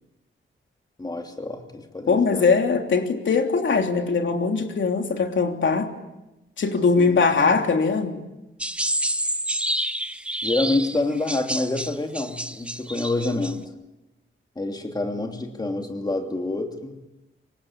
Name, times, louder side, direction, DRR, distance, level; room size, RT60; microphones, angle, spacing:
voice 1, 1.0-2.4 7.0-7.2 10.4-13.6 14.5-16.9, left 2 dB, 20° left, 3 dB, 3.0 m, -27 dB
voice 2, 2.1-5.9 6.6-8.2, left 4 dB, 65° left, 4 dB, 3.2 m, -21 dB
sound 1, 8.6-13.5, right 1 dB, 5° right, 1.0 m, -28 dB
27.0 x 24.0 x 8.8 m, 0.99 s
wide cardioid pair, 150°, 21 cm